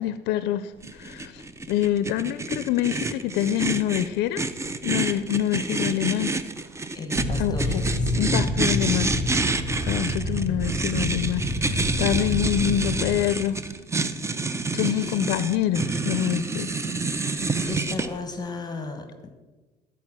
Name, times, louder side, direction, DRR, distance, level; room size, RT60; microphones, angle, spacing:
voice 1, 0.0-4.5 4.8-6.3 7.4-7.8 8.2-13.6 14.7-17.7, left 12 dB, 85° left, 0.4 m, -26 dB
sound 1, 0.8-18.1, right 3 dB, 15° right, 0.5 m, -28 dB
voice 2, 6.9-8.3 14.8-15.3 17.7-19.3, left 3 dB, 25° left, 1.2 m, -35 dB
sound 2, 7.1-13.2, left 1 dB, 80° right, 2.9 m, -28 dB
13.5 x 4.5 x 6.0 m
cardioid pair, 110°, 17 cm